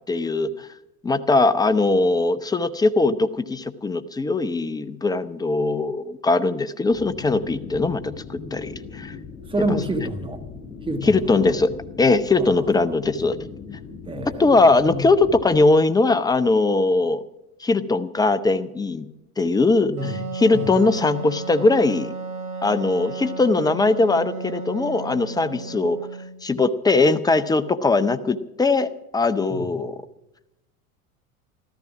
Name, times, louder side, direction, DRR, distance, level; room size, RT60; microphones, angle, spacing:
voice 1, 0.1-0.7 1.0-9.1 9.6-9.7 11.0-13.4 14.4-17.2 17.6-19.1 19.4-20.0 20.3-22.1 22.6-26.0 26.4-29.9, left 3 dB, 10° left, 0.7 m, -20 dB
sound 1, 6.9-15.6, left 5 dB, 30° left, 6.3 m, -39 dB
voice 2, 9.5-10.4 10.9-11.4 12.4-12.6 12.8-13.0 14.0-15.1 19.9-20.2 20.5-20.7 29.5-29.8, right 1 dB, 10° right, 1.8 m, -29 dB
Wind instrument woodwind instrument, 20.0-26.4, right 3 dB, 85° right, 3.4 m, -33 dB
14.0 x 13.0 x 6.1 m
figure-of-eight pair, 75°, 44 cm